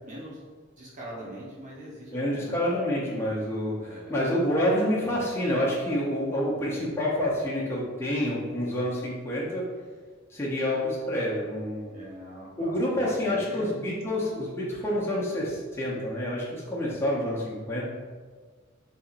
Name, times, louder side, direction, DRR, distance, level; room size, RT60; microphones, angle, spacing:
voice 1, 0.0-0.4 0.8-2.6 3.8-4.2 11.9-13.7, right 1 dB, 40° right, -6 dB, 1.0 m, -42 dB
voice 2, 2.1-9.7 10.3-11.9 12.6-17.8, left 1 dB, 10° left, -7 dB, 0.6 m, -28 dB
4.1 x 2.8 x 2.5 m, 1.5 s
head